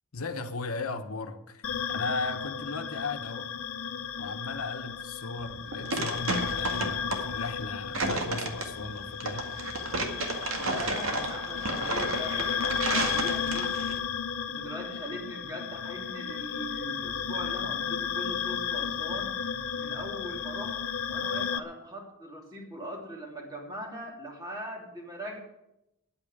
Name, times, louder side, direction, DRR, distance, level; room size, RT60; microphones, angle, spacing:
voice 1, 0.1-3.5 4.2-9.5, left 3 dB, 85° left, 7 dB, 1.2 m, -36 dB
sound 1, 1.6-21.6, left 7 dB, 70° left, 0.7 m, -34 dB
sound 2, 5.4-14.0, right 2 dB, 65° right, 1.9 m, -32 dB
voice 2, 10.6-13.8 14.5-19.4 19.7-20.8 21.1-25.4, equal, 20° right, 0 dB, 2.8 m, -40 dB
9.7 x 8.8 x 9.7 m, 0.88 s
head